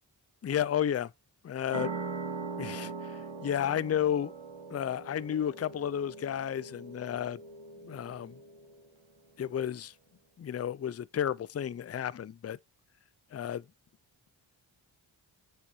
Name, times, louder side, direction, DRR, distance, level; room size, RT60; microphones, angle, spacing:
voice 1, 0.4-1.1 1.4-1.9 2.6-4.3 4.7-7.4 7.8-8.4 9.4-9.9 10.4-12.6 13.3-13.6, left 9 dB, 35° left, 0.5 m, -32 dB
sound 1, 1.7-8.9, right 4 dB, 70° right, 1.7 m, -41 dB
7.6 x 6.7 x 3.1 m
cardioid pair, 50°, 47 cm